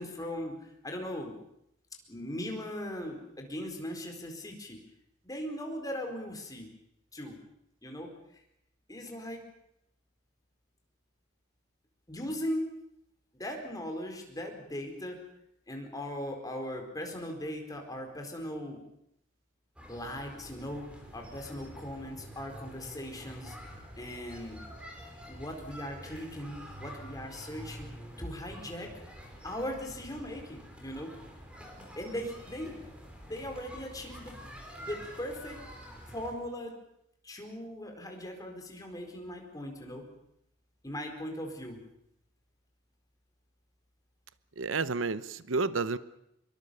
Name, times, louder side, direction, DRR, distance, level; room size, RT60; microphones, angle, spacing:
voice 1, 0.0-1.3 2.1-4.8 5.2-6.7 7.1-7.4 7.8-8.1 8.9-9.4 12.1-12.7 13.3-15.2 15.7-18.8 19.9-20.9 21.1-23.6 24.0-24.6 25.3-27.9 28.2-28.9 29.4-31.1 32.0-32.8 33.2-34.3 34.8-35.6 36.1-36.7 37.2-40.0 40.8-41.8, equal, 20° left, 3 dB, 4.6 m, -39 dB
sound 1, 19.8-36.3, equal, 5° right, 4.8 m, -47 dB
voice 2, 44.6-46.0, right 4 dB, 90° right, 15 dB, 0.9 m, -30 dB
25.0 x 23.0 x 7.0 m, 0.77 s
head